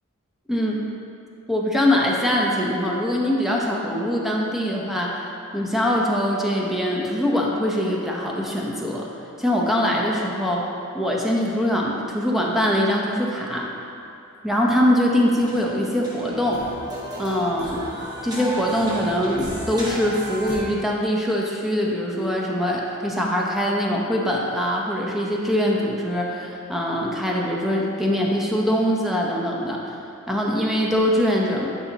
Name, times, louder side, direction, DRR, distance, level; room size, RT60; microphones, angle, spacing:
voice 1, 0.5-0.9 1.5-5.2 5.5-9.1 9.4-10.7 10.9-13.7 14.4-16.6 17.2-17.9 18.2-29.9 30.3-31.7, equal, ahead, -3 dB, 0.7 m, -23 dB
sound 1, 14.8-14.9 15.1-20.6, right 1 dB, 20° right, 1.1 m, -34 dB
9.9 x 5.6 x 2.8 m, 2.6 s
head